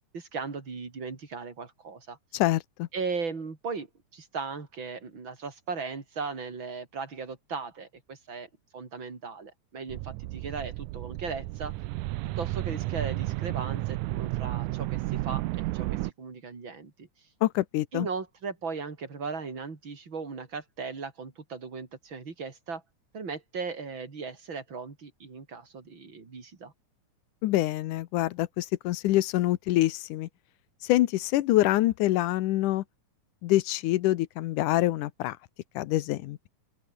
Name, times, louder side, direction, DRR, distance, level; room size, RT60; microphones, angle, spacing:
voice 1, 0.1-2.2 2.9-3.9 4.1-11.7 12.4-17.1 17.9-22.8 23.1-26.7, right 4 dB, 40° right, 4.4 m, -37 dB
voice 2, 2.3-2.9 17.4-18.1 27.4-30.3 30.8-32.8 33.4-35.4 35.8-36.5, left 16 dB, 85° left, 2.4 m, -25 dB
sound 1, 9.9-16.1, right 19 dB, 85° right, 2.1 m, -32 dB
open air
omnidirectional pair, 3.5 m